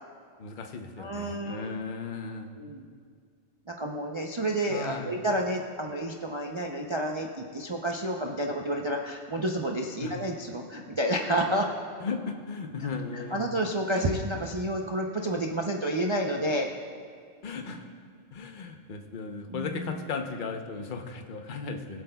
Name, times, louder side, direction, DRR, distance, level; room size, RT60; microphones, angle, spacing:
voice 1, 0.4-2.6 4.7-5.2 10.0-10.1 12.0-13.5 17.4-17.9 18.3-22.0, left 4 dB, 45° left, 4 dB, 0.8 m, -36 dB
voice 2, 1.0-1.7 2.6-2.8 3.7-11.7 13.1-16.7 19.5-19.9, right 1 dB, 35° right, 0 dB, 0.4 m, -30 dB
23.0 x 7.9 x 2.3 m, 2.1 s
omnidirectional pair, 1.3 m